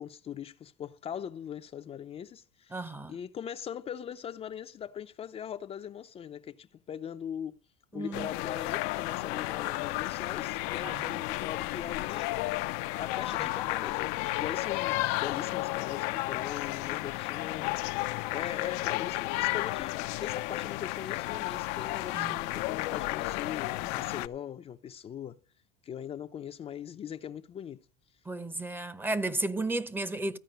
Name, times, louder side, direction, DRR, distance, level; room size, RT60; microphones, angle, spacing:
voice 1, 0.0-7.6 7.9-12.3 13.0-14.1 14.4-17.7 18.3-25.4 25.8-27.8, left 9 dB, 30° left, 0.5 m, -40 dB
voice 2, 2.7-3.2 7.9-8.3 10.8-11.1 22.1-22.4 28.3-30.4, right 2 dB, 10° right, 0.8 m, -33 dB
sound 1, 8.1-24.3, left 19 dB, 75° left, 0.6 m, -32 dB
14.0 x 4.8 x 9.1 m
supercardioid pair, 110°, 19 cm